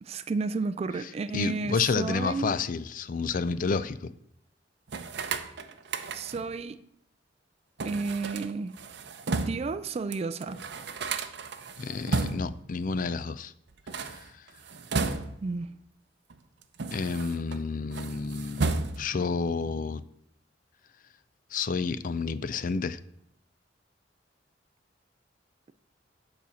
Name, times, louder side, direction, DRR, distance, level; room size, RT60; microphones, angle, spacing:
voice 1, 0.0-2.5 6.1-6.8 7.8-8.8 9.3-10.6 15.4-15.7, right 4 dB, 35° right, 0.3 m, -32 dB
voice 2, 1.3-4.1 11.8-13.5 14.1-14.2 16.9-18.7 19.0-20.0 21.5-23.0, left 4 dB, 50° left, 0.4 m, -30 dB
sound 1, 4.9-6.5 7.8-9.7 10.1-10.2 10.4-12.6 13.7-15.6 16.3-17.6 17.9-19.2, right 3 dB, 65° right, 0.7 m, -33 dB
8.7 x 4.3 x 6.9 m
head